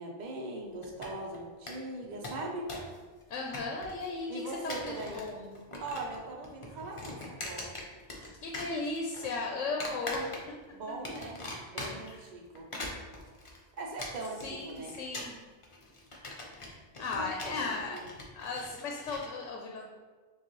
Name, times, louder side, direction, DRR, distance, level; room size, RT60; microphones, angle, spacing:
voice 1, 0.0-2.7 4.3-5.3 5.8-7.7 10.7-11.4 11.7-12.7 13.8-14.9 17.0-18.1, right 2 dB, 50° right, -1 dB, 0.6 m, -40 dB
sound 1, 0.8-1.4 1.7-1.8 2.0-3.0 3.2-4.1 4.5-5.3 5.6-6.2 6.4-8.3 8.5-9.3 9.8-10.7 11.0-12.2 12.6-19.3, left 2 dB, 35° left, 0.6 m, -41 dB
voice 2, 3.3-5.6 8.4-10.3 12.1-12.2 14.4-15.4 17.0-18.0 18.3-19.8, left 3 dB, 80° left, 0 dB, 0.9 m, -36 dB
6.8 x 2.4 x 3.0 m, 1.4 s
omnidirectional pair, 1.3 m